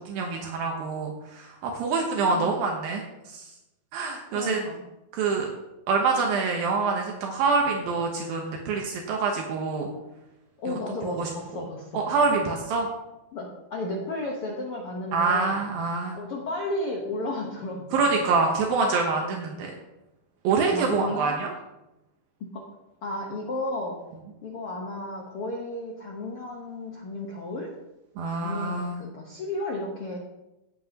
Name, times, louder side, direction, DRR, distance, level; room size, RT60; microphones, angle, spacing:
voice 1, 0.0-3.5 3.9-4.6 5.1-5.5 5.9-9.9 10.7-10.8 11.2-11.6 11.9-12.9 15.1-16.2 17.9-19.7 20.4-21.5 28.2-29.0, right 4 dB, 75° right, 1 dB, 2.8 m, -26 dB
voice 2, 2.3-2.7 4.3-4.8 10.6-12.0 13.3-15.6 16.1-18.2 19.2-19.5 20.7-21.4 22.4-22.6 23.0-24.0 24.4-27.7 28.3-30.2, left 1 dB, 65° left, -1 dB, 1.4 m, -33 dB
17.0 x 7.9 x 2.9 m, 0.95 s
omnidirectional pair, 4.3 m